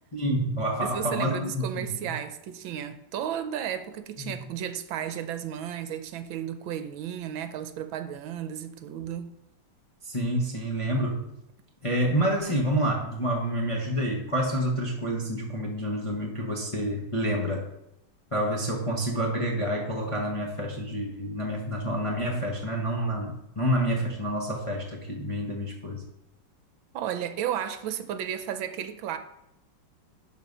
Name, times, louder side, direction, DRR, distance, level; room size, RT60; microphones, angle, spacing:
voice 1, 0.1-2.1 4.2-4.3 10.0-11.2 11.8-17.7 18.3-26.0, equal, 20° left, 1.0 m, -28 dB
voice 2, 0.8-9.3 26.9-29.2, right 9 dB, 75° right, 1.5 m, -33 dB
11.5 x 4.4 x 5.4 m
omnidirectional pair, 2.3 m